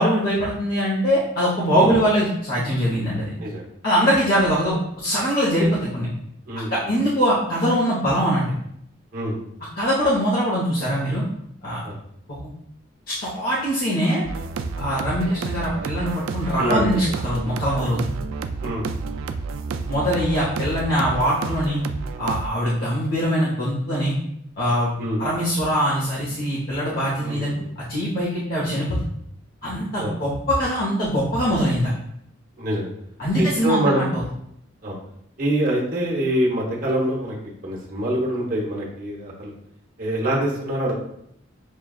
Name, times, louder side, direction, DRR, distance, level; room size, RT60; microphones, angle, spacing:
voice 1, 0.0-3.3 3.8-6.1 6.7-8.5 9.8-11.2 11.6-11.8 12.4-12.5 13.1-14.2 14.8-18.2 19.9-21.8 22.2-24.1 24.6-24.9 25.2-27.5 27.8-29.0 29.6-31.9 33.2-34.2, equal, 50° left, -7 dB, 0.9 m, -22 dB
voice 2, 6.5-6.9 9.1-9.4 11.8-12.0 16.6-16.9 18.6-18.9 25.0-25.2 27.2-27.7 30.0-30.2 32.6-32.9 33.4-34.0 34.8-35.0 35.4-37.4 37.6-39.5 40.0-40.9, right 1 dB, 45° right, -3 dB, 1.0 m, -25 dB
sound 1, 14.2-22.5, right 4 dB, 85° right, 0.3 m, -30 dB
6.4 x 2.3 x 2.3 m, 0.73 s
head